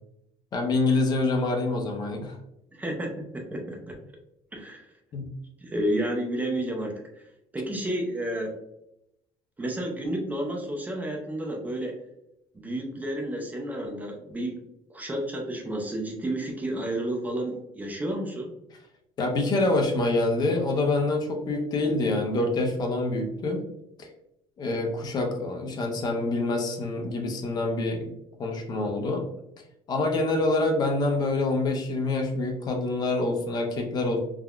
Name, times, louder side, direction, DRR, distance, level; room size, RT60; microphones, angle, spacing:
voice 1, 0.5-2.4 5.1-5.3 19.2-23.6 24.0-24.1 24.6-28.1 28.4-29.3 29.9-34.2, left 2 dB, 40° left, 2 dB, 0.5 m, -26 dB
voice 2, 2.7-4.0 4.5-4.8 5.6-7.3 7.5-8.6 9.6-12.0 12.5-14.6 14.9-18.5, right 1 dB, 15° right, 1 dB, 0.5 m, -31 dB
3.5 x 2.2 x 2.3 m, 0.82 s
cardioid pair, 145°, 11 cm